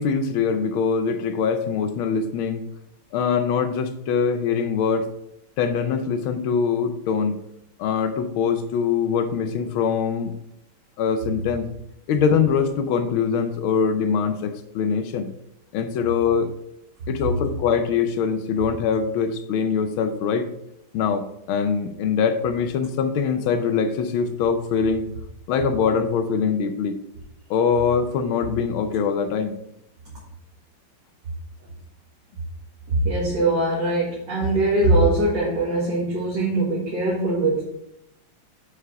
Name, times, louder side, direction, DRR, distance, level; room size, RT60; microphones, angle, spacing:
voice 1, 0.0-2.6 3.1-5.1 5.6-7.4 7.8-10.3 11.0-11.7 12.1-15.3 15.7-16.5 17.1-20.5 20.9-25.1 25.5-27.0 27.5-29.6, left 6 dB, 80° left, 9 dB, 1.6 m, -23 dB
voice 2, 32.9-37.6, right 2 dB, 60° right, -6 dB, 2.4 m, -21 dB
6.7 x 4.9 x 5.6 m, 0.80 s
omnidirectional pair, 2.3 m